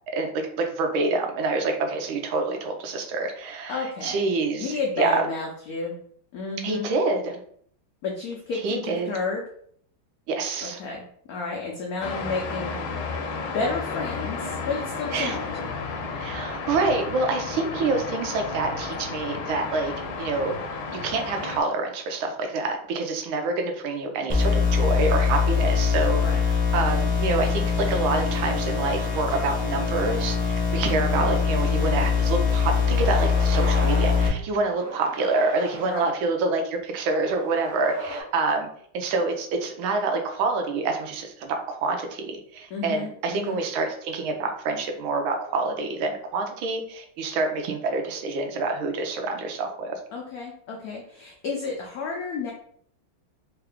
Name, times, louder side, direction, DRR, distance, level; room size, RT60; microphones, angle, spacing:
voice 1, 0.1-5.2 6.6-7.4 8.6-9.2 10.3-10.8 15.1-15.4 16.2-19.9 20.2-20.6 20.9-38.7 38.9-50.0, right 3 dB, 80° right, 4 dB, 1.4 m, -27 dB
voice 2, 3.7-4.2 4.6-5.9 6.3-6.9 8.0-9.4 10.6-12.8 13.5-15.6 26.2-26.4 30.9-31.3 35.8-36.1 42.7-43.6 50.1-52.5, left 3 dB, 90° left, 0 dB, 0.8 m, -31 dB
sound 1, 12.0-21.6, left 4 dB, 70° left, 1.2 m, -32 dB
sound 2, 24.3-34.3, left 6 dB, 10° right, 0.3 m, -23 dB
sound 3, 29.9-30.6 31.1-31.2 32.2-32.4 32.8-34.3 34.7-36.1 36.9-38.2, right 1 dB, 60° right, 0.7 m, -37 dB
3.7 x 2.4 x 3.4 m, 0.63 s
omnidirectional pair, 2.2 m